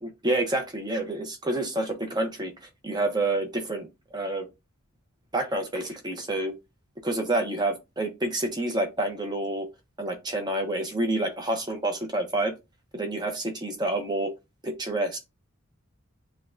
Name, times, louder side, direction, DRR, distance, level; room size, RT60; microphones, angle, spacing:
voice 1, 0.0-3.9 4.1-4.5 5.3-6.5 7.0-9.7 10.0-12.5 12.9-14.3 14.6-15.2, right 2 dB, 20° right, 0.8 m, -28 dB
6.8 x 2.3 x 2.6 m
head